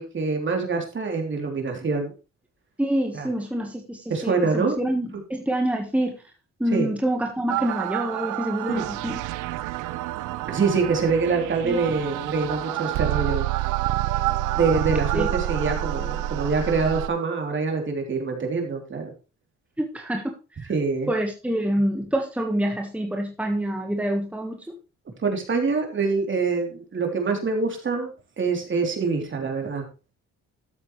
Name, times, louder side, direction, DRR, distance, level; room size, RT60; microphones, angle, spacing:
voice 1, 0.0-2.1 3.1-3.3 4.1-4.8 6.7-6.9 8.6-8.9 10.5-13.5 14.5-19.1 20.7-21.1 25.2-28.1 28.4-29.8, right 4 dB, 40° right, 2 dB, 3.4 m, -25 dB
voice 2, 2.8-6.2 6.6-9.2 11.6-11.8 15.1-15.3 19.8-20.7 21.1-24.8, right 1 dB, 5° right, 2 dB, 1.5 m, -27 dB
sound 1, 7.5-17.1, right 15 dB, 85° right, 0.6 m, -28 dB
13.0 x 7.7 x 3.2 m, 0.32 s
cardioid pair, 90°, 30 cm